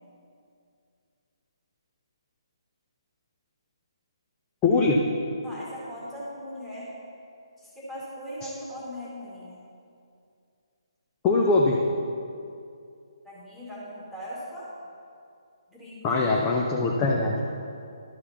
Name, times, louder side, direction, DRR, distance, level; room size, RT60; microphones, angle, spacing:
voice 1, 4.6-5.0 8.4-8.5 11.2-11.8 16.0-17.4, left 3 dB, 15° left, -2 dB, 0.6 m, -22 dB
voice 2, 5.4-6.9 7.6-9.6 13.2-14.7 15.7-16.3 17.4-17.5, equal, ahead, -7 dB, 2.0 m, -39 dB
12.0 x 4.8 x 5.6 m, 2.4 s
figure-of-eight pair, 140°, 3 cm